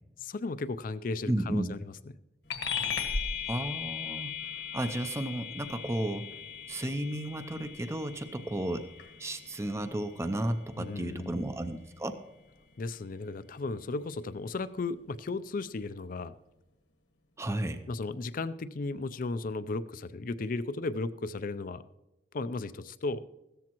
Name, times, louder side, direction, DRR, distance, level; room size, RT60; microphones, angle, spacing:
voice 1, 0.2-1.8 10.8-11.4 12.8-16.3 17.9-21.8 22.3-23.2, left 3 dB, 50° left, 15 dB, 0.5 m, -35 dB
voice 2, 1.3-1.7 3.5-4.3 4.7-6.3 6.7-8.9 9.2-12.2 17.4-17.8, right 1 dB, 15° right, 9 dB, 0.5 m, -33 dB
sound 1, 2.5-12.3, left 6 dB, 70° left, 1.5 m, -38 dB
15.5 x 13.5 x 3.0 m, 1.0 s
head